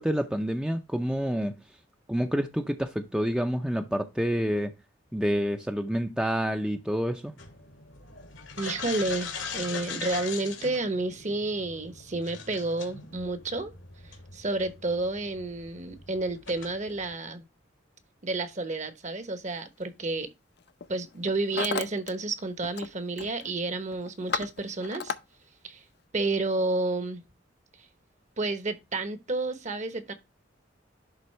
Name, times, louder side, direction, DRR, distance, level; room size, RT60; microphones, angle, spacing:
voice 1, 0.0-1.5 2.1-4.7 5.1-7.4, equal, 5° right, 0.5 m, -28 dB
sound 1, 7.4-17.1, left 5 dB, 90° left, 2.0 m, -41 dB
voice 2, 8.6-13.7 14.0-17.4 18.2-20.3 20.9-25.1 25.6-25.8 26.1-27.2 28.4-30.1, right 2 dB, 40° right, 1.0 m, -30 dB
Hammer, 19.6-19.8 20.6-20.9 21.1-22.1 22.4-22.9 23.2-23.5 23.9-25.2, left 6 dB, 60° left, 0.6 m, -34 dB
11.0 x 3.7 x 3.2 m
head